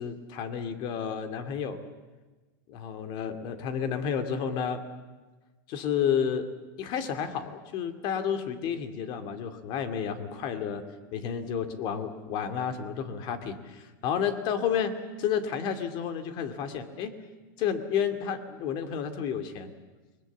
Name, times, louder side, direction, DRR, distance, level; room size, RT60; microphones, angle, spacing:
voice 1, 0.0-1.8 2.7-4.8 5.7-6.5 6.8-10.8 11.1-17.1 17.6-19.7, left 7 dB, 45° left, 9 dB, 2.5 m, -31 dB
29.5 x 21.0 x 7.4 m, 1.2 s
supercardioid pair, 135°, 11 cm